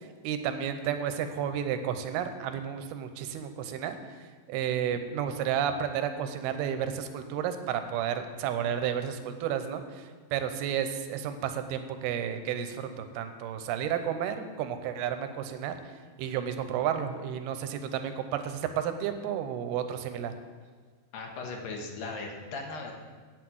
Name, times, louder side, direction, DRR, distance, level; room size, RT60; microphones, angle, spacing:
voice 1, 0.2-4.0 4.5-15.8 16.2-20.3, right 9 dB, 90° right, 8 dB, 2.8 m, -32 dB
voice 2, 21.1-23.0, left 3 dB, 70° left, 2 dB, 2.9 m, -38 dB
8.8 x 8.0 x 7.8 m, 1.6 s
omnidirectional pair, 4.4 m